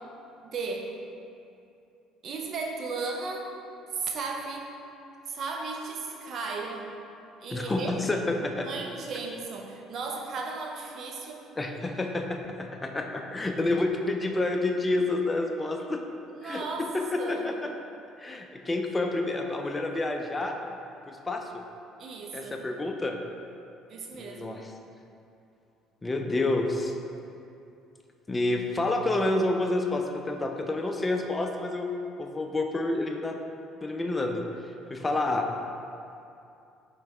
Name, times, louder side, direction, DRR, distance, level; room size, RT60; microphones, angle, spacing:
voice 1, 0.4-0.9 2.2-3.5 3.9-4.7 5.3-6.9 7.4-7.9 8.6-11.4 16.3-16.9 17.2-17.5 22.0-22.6 23.9-24.6, right 4 dB, 55° right, 1 dB, 0.5 m, -35 dB
voice 2, 7.5-8.7 11.6-16.0 16.4-17.7 18.2-20.6 21.1-21.6 22.3-23.2 24.2-24.7 26.0-26.9 28.3-31.9 32.2-33.4 33.8-34.4 34.9-35.5, left 2 dB, 20° left, 3 dB, 0.4 m, -29 dB
4.6 x 3.1 x 3.4 m, 2.6 s
hypercardioid pair, 60°, 0 cm